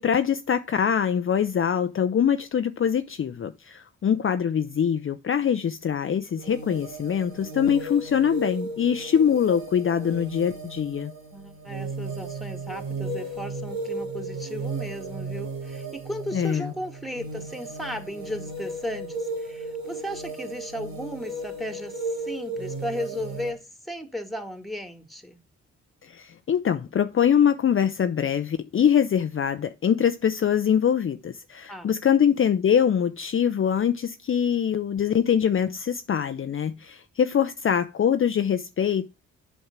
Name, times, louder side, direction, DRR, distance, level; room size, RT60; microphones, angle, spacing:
voice 1, 0.0-11.1 16.3-16.7 26.0-39.1, left 8 dB, 40° left, 0.7 m, -23 dB
sound 1, 6.4-23.5, right 2 dB, 85° right, 3.3 m, -35 dB
voice 2, 11.3-23.6 23.8-25.4 31.7-31.9, equal, ahead, 2.1 m, -35 dB
7.9 x 5.3 x 6.0 m
hypercardioid pair, 45°, 32 cm